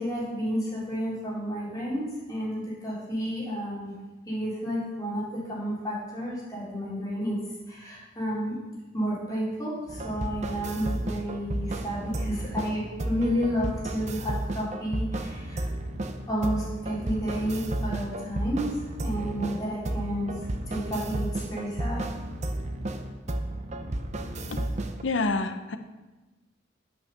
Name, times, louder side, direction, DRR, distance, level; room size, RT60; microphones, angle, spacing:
voice 1, 0.0-3.9 4.3-7.4 7.7-8.6 8.9-15.7 16.3-18.7 19.0-20.3 20.7-22.0, equal, 20° left, -7 dB, 3.5 m, -31 dB
sound 1, 9.9-25.0, right 1 dB, 35° right, 0.6 m, -33 dB
voice 2, 25.0-25.8, left 3 dB, 75° left, 8 dB, 0.7 m, -28 dB
9.0 x 5.7 x 6.7 m, 1.2 s
head